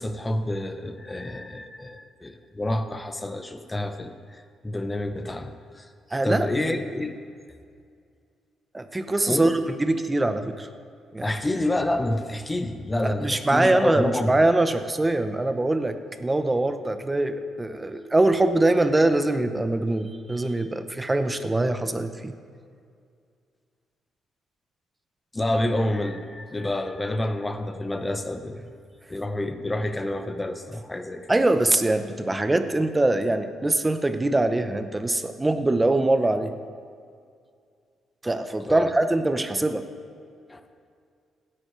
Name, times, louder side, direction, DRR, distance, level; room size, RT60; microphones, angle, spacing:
voice 1, 0.0-5.9 6.2-7.1 9.3-9.5 11.2-14.4 25.3-28.7 29.1-31.3 38.7-38.9 40.5-40.7, left 1 dB, 15° left, 8 dB, 0.9 m, -28 dB
voice 2, 6.1-7.0 8.7-10.7 11.1-11.3 13.0-22.3 31.3-36.5 38.2-39.9, right 2 dB, 15° right, 9 dB, 0.8 m, -23 dB
16.5 x 10.0 x 3.2 m, 2.3 s
cardioid pair, 90°, 0 cm